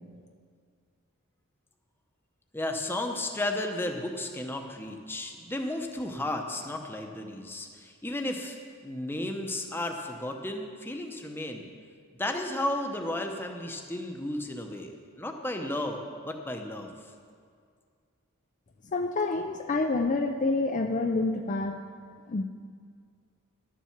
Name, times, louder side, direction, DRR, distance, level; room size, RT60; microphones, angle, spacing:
voice 1, 2.5-8.6 8.8-11.7 12.2-16.9, left 1 dB, 10° left, 3 dB, 0.8 m, -33 dB
voice 2, 18.9-21.8 22.3-22.4, left 3 dB, 35° left, 4 dB, 0.4 m, -27 dB
12.0 x 7.4 x 7.2 m, 2.1 s
head